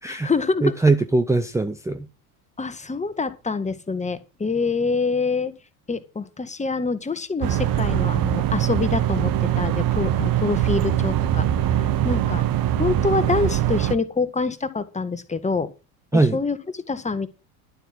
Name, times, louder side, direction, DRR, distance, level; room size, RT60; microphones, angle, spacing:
voice 1, 0.1-0.7 2.6-5.5 5.9-11.5 11.7-12.4 12.8-15.7 16.1-17.3, left 4 dB, 15° left, 1.8 m, -26 dB
voice 2, 0.6-2.1 16.1-16.4, right 3 dB, 5° right, 1.0 m, -20 dB
sound 1, 7.4-13.9, right 11 dB, 50° right, 1.5 m, -22 dB
12.0 x 7.9 x 6.3 m
hypercardioid pair, 85°, 46 cm